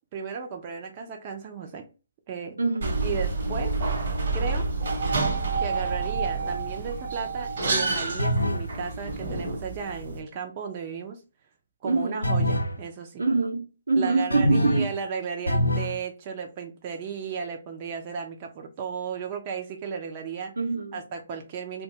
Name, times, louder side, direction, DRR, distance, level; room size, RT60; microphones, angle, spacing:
voice 1, 0.1-1.9 2.3-2.6 3.0-3.7 4.3-4.7 5.6-11.2 11.8-13.2 14.0-20.5 20.9-21.8, right 6 dB, 35° right, 0.5 m, -34 dB
voice 2, 2.6-3.0 11.8-12.3 13.2-14.9 20.6-21.0, right 3 dB, 80° right, 0.8 m, -25 dB
sound 1, 2.8-10.2, right 3 dB, 60° right, 1.1 m, -28 dB
sound 2, 8.2-8.7 12.2-12.8 14.3-15.0 15.5-16.0, equal, 90° left, 0.5 m, -24 dB
2.6 x 2.3 x 3.9 m
figure-of-eight pair, 140°, 0 cm